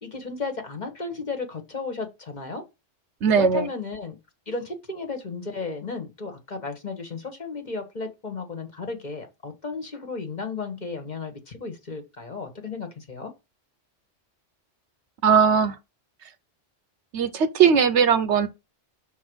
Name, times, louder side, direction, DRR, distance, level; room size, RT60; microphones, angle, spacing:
voice 1, 0.0-2.6 3.3-4.2 4.5-13.3, left 4 dB, 40° left, 1.3 m, -34 dB
voice 2, 3.2-3.7 15.2-15.8 17.1-18.5, right 6 dB, 70° right, 1.1 m, -19 dB
6.5 x 4.0 x 6.2 m
omnidirectional pair, 1.3 m